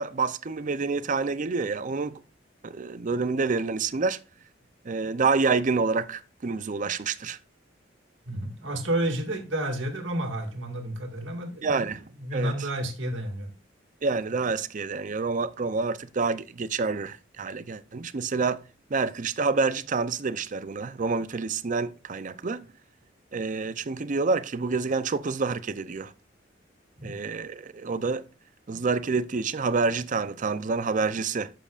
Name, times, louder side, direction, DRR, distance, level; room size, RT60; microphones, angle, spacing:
voice 1, 0.0-2.2 2.6-4.2 4.8-7.4 11.6-12.0 12.3-12.5 14.0-18.6 18.9-22.7 23.3-26.1 27.0-28.2 28.7-31.5, right 4 dB, 45° right, 0.5 m, -28 dB
voice 2, 8.3-11.9 12.2-13.5 27.0-27.1, right 1 dB, 90° right, 2.0 m, -30 dB
11.5 x 7.6 x 2.4 m
head